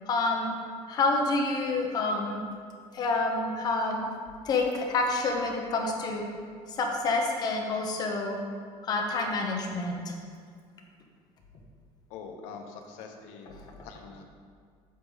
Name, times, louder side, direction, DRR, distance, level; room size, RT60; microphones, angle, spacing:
voice 1, 0.1-0.5 0.9-2.4 2.9-4.1 4.4-6.3 6.7-8.4 8.8-10.1, left 3 dB, 35° left, 1 dB, 0.9 m, -28 dB
voice 2, 12.1-14.2, left 5 dB, 75° left, 3 dB, 1.0 m, -44 dB
8.3 x 6.3 x 3.9 m, 2.1 s
cardioid pair, 175°, 12 cm